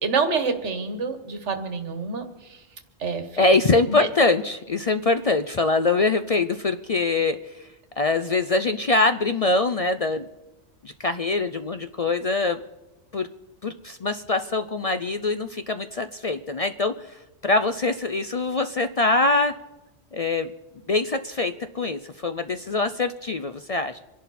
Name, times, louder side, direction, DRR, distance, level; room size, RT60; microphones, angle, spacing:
voice 1, 0.0-2.6 3.0-3.4 3.9-4.1, right 4 dB, 90° right, 8 dB, 1.7 m, -27 dB
voice 2, 3.4-7.7 8.0-10.2 10.8-12.6 13.1-13.3 13.6-19.5 20.1-20.5 20.9-24.0, left 3 dB, 45° left, 9 dB, 0.5 m, -23 dB
26.0 x 11.0 x 4.2 m, 1.0 s
omnidirectional pair, 1.2 m